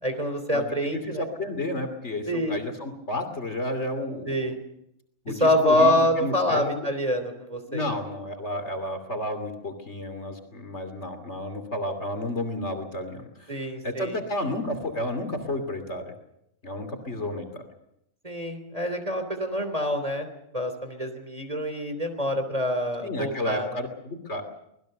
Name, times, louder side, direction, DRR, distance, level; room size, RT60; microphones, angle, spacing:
voice 1, 0.0-1.3 2.3-2.6 4.2-4.6 5.4-7.9 13.5-14.1 18.2-20.3 20.5-23.8, left 1 dB, 25° right, 7 dB, 3.3 m, -26 dB
voice 2, 0.5-4.5 5.2-6.9 7.7-16.1 16.6-17.7 23.0-24.4, left 1 dB, 50° left, 7 dB, 3.2 m, -32 dB
25.0 x 20.5 x 6.7 m, 0.79 s
omnidirectional pair, 1.5 m